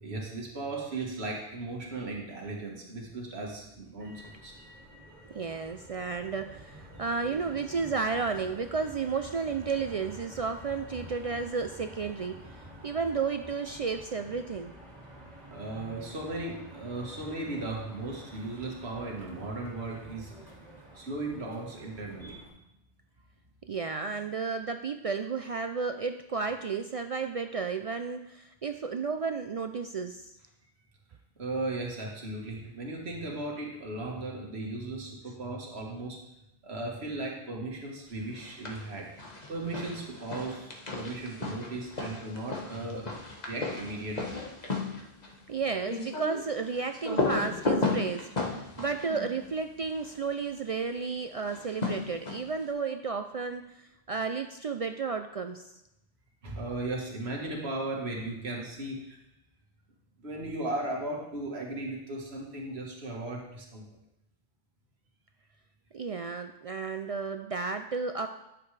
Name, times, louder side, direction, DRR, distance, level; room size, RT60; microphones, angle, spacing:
voice 1, 0.0-4.5 15.5-20.3 20.9-22.5 31.4-36.2 36.6-39.1 39.5-43.1 43.5-44.4 56.4-59.2 60.2-63.8, right 2 dB, 80° right, -1 dB, 1.7 m, -36 dB
Motor vehicle (road), 4.0-22.5, equal, 40° right, 2.3 m, -49 dB
voice 2, 5.3-14.7 23.7-30.3 45.5-55.7 65.9-68.3, right 5 dB, 60° right, 7 dB, 0.4 m, -33 dB
sound 1, 38.3-38.9 39.2-50.2 51.4-52.6, left 3 dB, 40° left, 1.3 m, -34 dB
11.5 x 7.0 x 3.3 m, 0.88 s
omnidirectional pair, 1.1 m